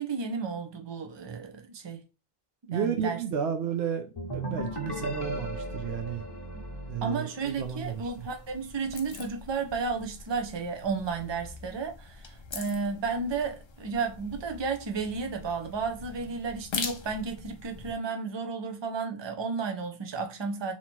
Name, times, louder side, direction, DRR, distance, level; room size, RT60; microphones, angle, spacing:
voice 1, 0.0-2.0 2.7-3.2 6.5-6.6 7.0-20.7, right 5 dB, 35° right, 0.5 m, -33 dB
voice 2, 2.7-6.2 6.9-8.3, right 7 dB, 85° right, 0.8 m, -32 dB
sound 1, 4.2-7.9, right 1 dB, 25° left, 0.8 m, -36 dB
sound 2, 7.4-17.9, left 4 dB, 50° left, 0.3 m, -43 dB
2.9 x 2.9 x 4.3 m
omnidirectional pair, 1.0 m